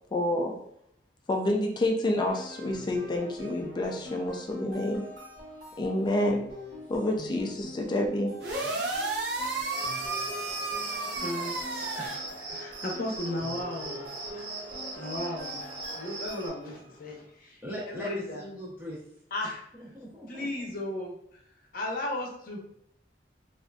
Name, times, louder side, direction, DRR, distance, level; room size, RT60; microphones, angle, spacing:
voice 1, 0.1-0.6 1.3-5.1 5.8-6.5 6.9-8.4, left 1 dB, 25° left, 1 dB, 0.3 m, -28 dB
sound 1, 2.3-17.0, left 1 dB, 45° right, 1.3 m, -45 dB
sound 2, 8.4-12.1, right 3 dB, 65° right, 0.6 m, -32 dB
Cricket, 9.7-16.5, right 2 dB, 85° right, 1.2 m, -40 dB
voice 2, 11.2-14.0 14.3-14.6 15.0-17.6 17.9-18.4 19.3-19.6 20.3-21.4 21.7-22.6, left 1 dB, 55° left, 0 dB, 0.7 m, -36 dB
voice 3, 17.6-19.0 19.7-20.5, equal, 10° right, -7 dB, 0.8 m, -39 dB
3.5 x 2.5 x 2.3 m, 0.74 s
head